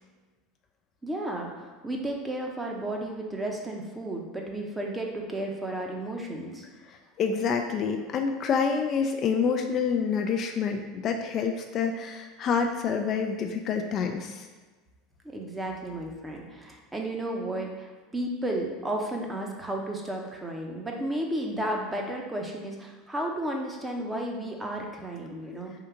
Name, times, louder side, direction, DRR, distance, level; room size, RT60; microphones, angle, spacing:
voice 1, 1.0-6.6 15.2-25.7, right 1 dB, 15° right, 1 dB, 0.8 m, -33 dB
voice 2, 6.9-14.5, left 6 dB, 45° left, 4 dB, 0.4 m, -27 dB
3.7 x 2.6 x 4.5 m, 1.3 s
hypercardioid pair, 100°, 0 cm